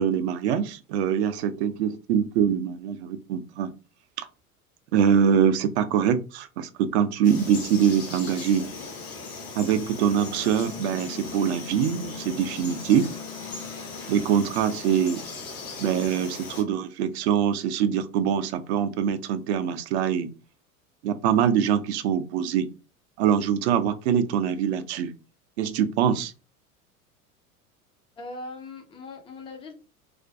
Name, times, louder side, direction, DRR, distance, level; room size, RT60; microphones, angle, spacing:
voice 1, 0.0-3.7 4.2-4.3 4.9-8.7 9.6-13.1 14.1-15.2 15.8-20.3 21.0-22.7 23.2-25.1 25.6-26.3, right 8 dB, 50° right, 0.4 m, -24 dB
Frog, 7.2-16.6, left 4 dB, 70° left, 0.9 m, -38 dB
voice 2, 28.2-29.7, left 2 dB, 15° left, 0.4 m, -40 dB
2.4 x 2.2 x 2.4 m
figure-of-eight pair, 75°, 44 cm